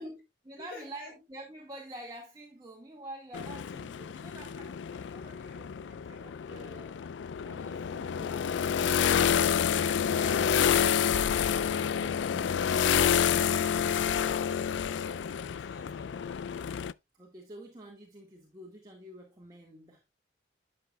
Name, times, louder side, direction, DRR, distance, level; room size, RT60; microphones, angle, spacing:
voice 1, 0.0-7.1 7.4-9.3 9.6-12.9 17.2-20.0, right 1 dB, 20° right, 1.7 m, -48 dB
voice 2, 0.6-1.1 14.9-16.4, left 3 dB, 55° left, 4.1 m, -51 dB
sound 1, 3.3-16.9, left 8 dB, 80° left, 0.4 m, -28 dB
11.0 x 6.9 x 2.2 m
head